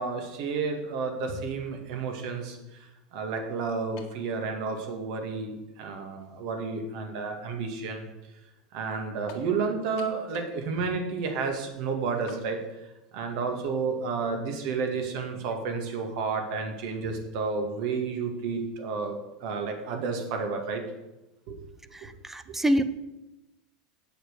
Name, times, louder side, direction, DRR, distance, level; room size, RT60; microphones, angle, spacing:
voice 1, 0.0-8.1 8.7-20.8 21.5-21.6 22.5-22.6, right 4 dB, 65° right, 4 dB, 2.0 m, -31 dB
sound 1, 4.0-4.3 5.1-5.2 9.3-9.5 10.0-10.6 10.9-11.0 12.3-12.5, left 7 dB, 65° left, 1.8 m, -48 dB
voice 2, 21.9-22.8, equal, 10° right, 11 dB, 0.7 m, -26 dB
8.1 x 6.4 x 6.6 m, 0.99 s
supercardioid pair, 110°, 4 cm